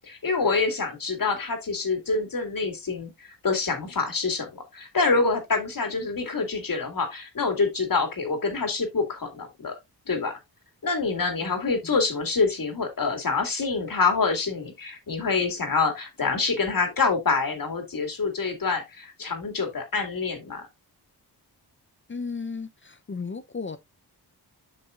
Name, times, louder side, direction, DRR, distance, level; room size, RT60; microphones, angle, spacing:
voice 1, 0.0-9.7 10.1-10.3 10.8-20.6, left 4 dB, 55° left, 2.3 m, -26 dB
voice 2, 22.1-23.8, left 4 dB, 30° left, 0.6 m, -34 dB
8.7 x 6.0 x 2.5 m
wide cardioid pair, 90°, 40 cm